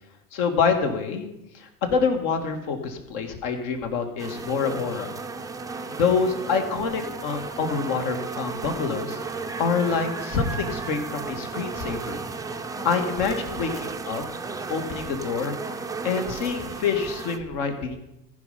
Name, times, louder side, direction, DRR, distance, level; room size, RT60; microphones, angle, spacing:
voice 1, 0.3-1.3 1.5-5.1 5.9-9.2 9.6-12.2 12.8-14.2 14.7-15.6 16.0-18.0, left 5 dB, 55° left, 5 dB, 2.0 m, -26 dB
sound 1, 4.2-17.4, right 4 dB, 10° right, 0.6 m, -34 dB
14.5 x 5.4 x 5.8 m, 0.90 s
hypercardioid pair, 90°, 45 cm